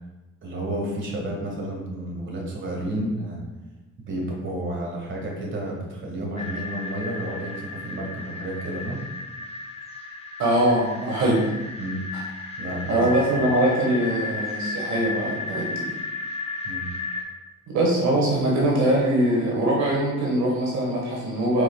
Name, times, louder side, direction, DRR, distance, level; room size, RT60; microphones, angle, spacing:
voice 1, 0.4-3.4 4.0-9.1 11.8-12.0 12.6-13.1 16.6-16.9, right 1 dB, 40° right, -2 dB, 1.4 m, -31 dB
sound 1, 6.4-17.2, left 3 dB, 20° left, 0.8 m, -34 dB
voice 2, 10.4-11.5 12.9-15.8 17.7-21.6, right 1 dB, 70° right, -3 dB, 1.4 m, -22 dB
5.0 x 4.6 x 2.2 m, 1.0 s
cardioid pair, 90°, 30 cm